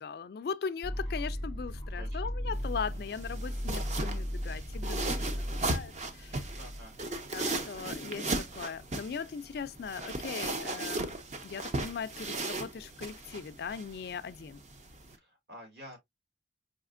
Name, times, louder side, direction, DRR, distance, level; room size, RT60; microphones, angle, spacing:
voice 1, 0.0-6.5 7.3-11.2 11.4-14.6, left 6 dB, 55° left, 0.3 m, -39 dB
sound 1, 0.8-6.8, equal, 80° right, 2.0 m, -36 dB
sound 2, 2.5-15.2, right 2 dB, 40° right, 0.6 m, -37 dB
voice 2, 6.6-6.9 15.1-16.0, equal, 60° right, 2.0 m, -49 dB
4.9 x 2.9 x 2.4 m
head